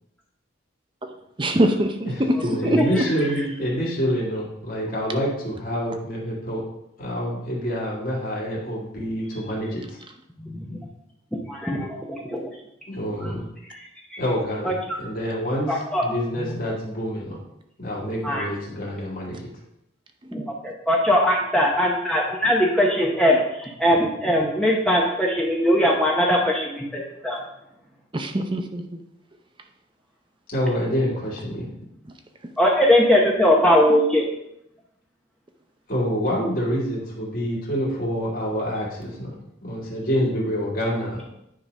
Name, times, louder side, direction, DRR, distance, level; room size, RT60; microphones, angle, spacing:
voice 1, 1.4-2.4 2.6-3.1 28.1-29.0, right 1 dB, 25° right, 5 dB, 0.6 m, -23 dB
voice 2, 2.0-6.6 7.0-10.0 12.9-13.4 14.2-17.4 17.8-19.4 30.5-31.7 35.9-39.3 39.6-41.2, equal, 45° left, -5 dB, 2.6 m, -27 dB
voice 3, 2.8-3.1 10.4-10.8 11.5-12.0 12.3-12.4 13.7-14.2 14.6-15.0 15.7-16.0 16.4-16.5 18.2-18.5 20.3-20.4 20.9-27.4 32.6-34.2, equal, 5° left, -3 dB, 0.9 m, -20 dB
9.9 x 3.9 x 5.4 m, 0.81 s
head